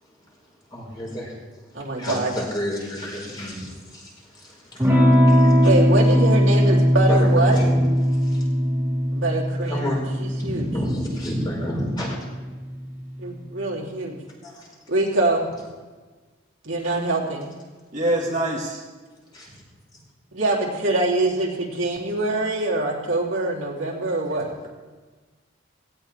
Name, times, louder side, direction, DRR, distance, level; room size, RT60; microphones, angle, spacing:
voice 1, 0.7-4.9 5.3-5.5 7.1-8.4 9.6-12.2 14.4-14.7 19.3-19.6, equal, 25° left, -4 dB, 4.8 m, -31 dB
voice 2, 1.7-2.3 5.6-7.6 9.1-9.8 10.2-10.6 13.2-14.2 14.9-15.5 16.6-17.5 20.3-24.5, right 2 dB, 80° right, -4 dB, 3.2 m, -24 dB
Electric guitar / Strum, 4.8-13.1, equal, 15° right, 2.9 m, -20 dB
voice 3, 17.9-18.8, right 1 dB, 40° right, -3 dB, 2.0 m, -24 dB
17.0 x 17.0 x 3.4 m, 1.3 s
head